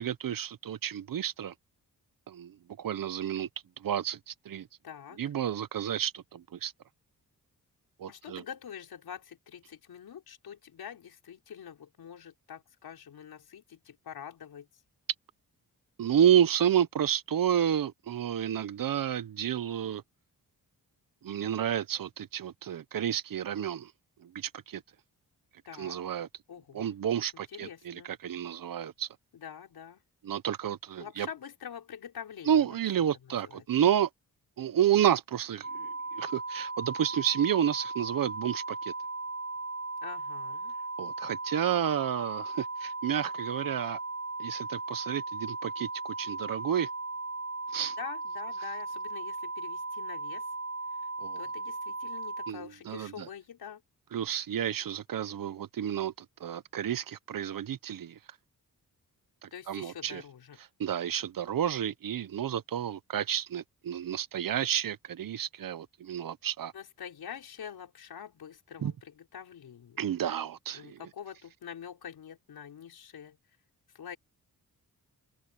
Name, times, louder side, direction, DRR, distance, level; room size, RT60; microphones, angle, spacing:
voice 1, 0.0-1.5 2.3-3.5 3.8-4.7 5.2-6.7 8.0-8.4 16.0-20.0 21.2-23.9 24.2-24.8 25.8-26.3 26.7-29.1 30.2-31.3 32.5-34.1 34.6-38.9 41.0-44.0 44.4-46.9 47.7-48.0 51.2-51.4 52.5-53.3 54.1-56.1 56.4-58.2 59.4-60.2 60.8-66.7 68.8-68.9 70.0-71.0, right 9 dB, 65° right, 0.9 m, -30 dB
voice 2, 4.8-5.2 8.1-14.8 25.6-26.0 26.5-27.0 27.3-28.1 29.3-30.0 31.0-32.7 33.2-33.6 40.0-40.7 48.0-50.5 51.3-53.8 59.5-60.6 66.7-70.2 70.7-73.4 73.9-74.2, left 8 dB, 85° left, 4.9 m, -45 dB
sound 1, 35.6-52.5, right 3 dB, 40° right, 2.3 m, -37 dB
open air
wide cardioid pair, 110°, 36 cm